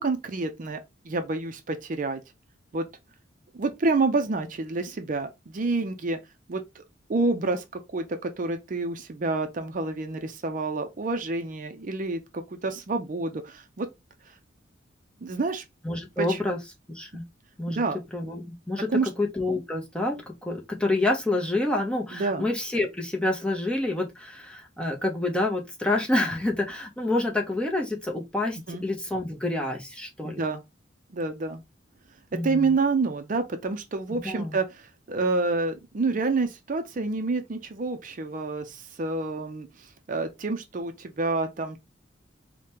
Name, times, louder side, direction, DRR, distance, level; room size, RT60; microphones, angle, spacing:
voice 1, 0.0-2.2 2.7-2.8 3.5-6.2 6.5-6.8 7.1-7.6 7.9-13.9 15.2-15.6 16.2-16.5 17.7-18.0 18.9-19.1 22.1-22.5 28.7-28.8 30.2-30.6 31.1-31.6 32.4-41.9, right 3 dB, 45° right, 0.5 m, -28 dB
voice 2, 15.8-16.6 16.9-17.2 17.6-17.8 18.1-30.4 32.3-32.7 34.1-34.6, left 2 dB, 5° left, 0.7 m, -28 dB
4.9 x 2.2 x 2.9 m
head